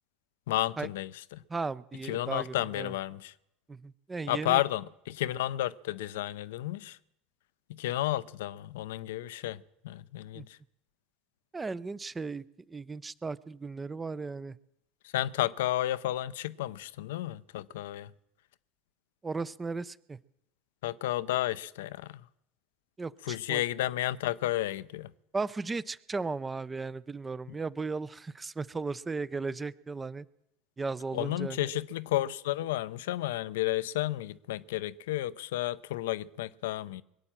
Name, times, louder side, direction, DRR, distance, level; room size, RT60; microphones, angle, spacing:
voice 1, 0.5-1.4 2.0-3.3 4.3-7.0 7.7-10.6 15.0-18.1 20.8-22.2 23.2-25.1 31.1-37.0, left 14 dB, 70° left, 0.5 m, -32 dB
voice 2, 1.5-2.9 3.7-4.6 10.3-10.5 11.5-14.6 19.2-20.2 23.0-23.6 25.3-30.3 30.8-31.7, right 4 dB, 20° right, 0.5 m, -36 dB
22.0 x 8.8 x 7.4 m
hypercardioid pair, 75°, 0 cm